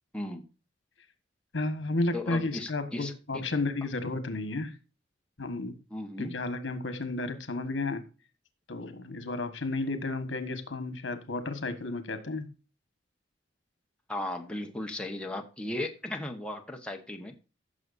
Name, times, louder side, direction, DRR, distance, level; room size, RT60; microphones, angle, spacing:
voice 1, 1.5-4.8 5.4-5.8 6.2-8.0 8.7-12.5, left 2 dB, 80° left, 9 dB, 1.6 m, -32 dB
voice 2, 2.1-3.4 5.9-6.3 14.1-17.3, left 1 dB, 5° left, 2 dB, 1.2 m, -36 dB
15.5 x 6.7 x 2.7 m, 0.33 s
head